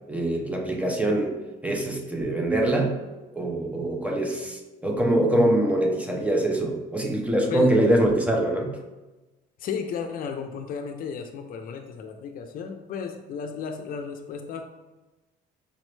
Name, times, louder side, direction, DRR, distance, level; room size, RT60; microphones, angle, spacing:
voice 1, 0.1-1.4 1.6-3.0 3.3-8.8, right 1 dB, 10° right, 0 dB, 0.5 m, -24 dB
voice 2, 9.6-14.6, left 6 dB, 60° left, 5 dB, 0.5 m, -33 dB
4.9 x 2.1 x 3.1 m, 1.1 s
cardioid pair, 110°, 17 cm